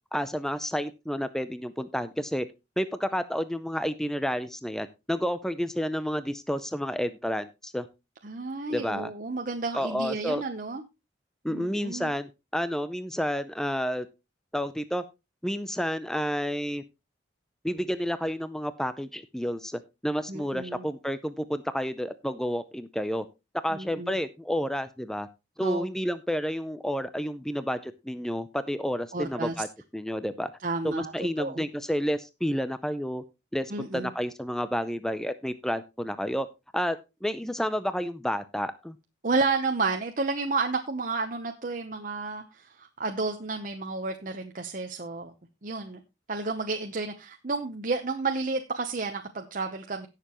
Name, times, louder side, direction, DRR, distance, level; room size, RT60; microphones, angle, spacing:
voice 1, 0.1-2.5 2.8-7.9 8.7-9.1 9.7-10.4 11.4-14.1 14.5-15.0 15.4-16.8 17.6-23.2 23.6-25.3 25.6-29.7 29.9-30.5 30.8-33.2 33.5-36.5 36.7-39.0, equal, 5° left, 12 dB, 0.5 m, -30 dB
voice 2, 8.2-10.8 11.5-12.1 20.3-20.8 23.7-24.2 25.6-25.8 29.1-29.5 30.6-31.1 31.4-31.6 33.7-34.1 39.2-45.3 45.6-46.0 46.3-50.1, right 3 dB, 45° right, 5 dB, 0.9 m, -31 dB
17.0 x 6.8 x 3.0 m, 0.26 s
head